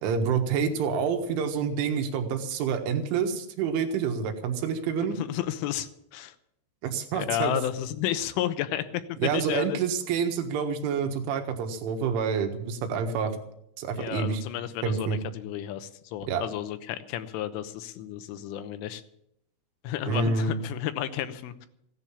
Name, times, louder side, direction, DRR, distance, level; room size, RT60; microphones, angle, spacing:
voice 1, 0.0-5.2 6.8-7.6 9.2-13.3 13.8-14.4 14.8-15.2 16.3-16.4 20.1-20.6, right 6 dB, 85° right, 5 dB, 3.9 m, -28 dB
voice 2, 5.2-6.4 7.1-9.8 14.0-19.0 19.8-21.7, left 12 dB, 90° left, 10 dB, 3.5 m, -32 dB
16.5 x 10.5 x 7.1 m, 0.77 s
omnidirectional pair, 5.5 m